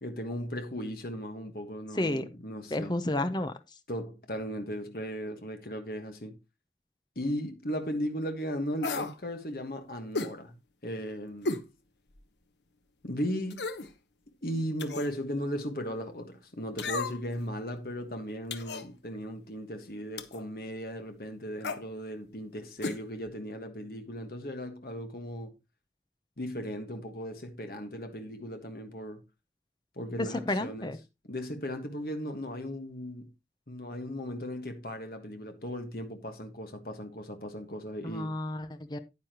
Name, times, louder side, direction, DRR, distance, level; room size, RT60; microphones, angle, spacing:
voice 1, 0.0-2.9 3.9-6.4 7.1-10.5 10.8-11.6 13.0-13.7 14.4-25.5 26.4-29.2 29.9-30.9 31.3-33.3 33.7-38.3, equal, 55° left, 1.5 m, -37 dB
voice 2, 1.9-2.2 2.7-3.5 30.5-31.0 38.0-39.0, left 1 dB, 25° left, 0.8 m, -31 dB
sound 1, 8.8-9.2 10.1-10.4 11.5-11.7 12.2-12.3 13.5-13.9 14.8-15.2 16.8-17.3 18.5-18.9 20.2-20.5 21.6-21.8 22.8-23.0 23.3-23.4, left 3 dB, 85° left, 1.0 m, -34 dB
9.7 x 9.6 x 3.0 m
head